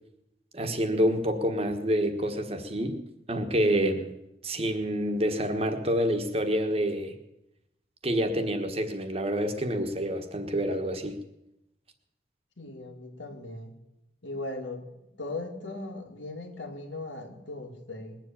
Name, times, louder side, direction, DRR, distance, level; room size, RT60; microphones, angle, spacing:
voice 1, 0.5-3.0 3.3-4.1 4.4-7.2 8.0-11.2, equal, 30° right, 7 dB, 1.4 m, -27 dB
voice 2, 12.6-13.7 14.2-14.8 15.2-18.2, left 2 dB, 75° left, 4 dB, 2.3 m, -38 dB
20.5 x 7.5 x 8.7 m, 0.89 s
head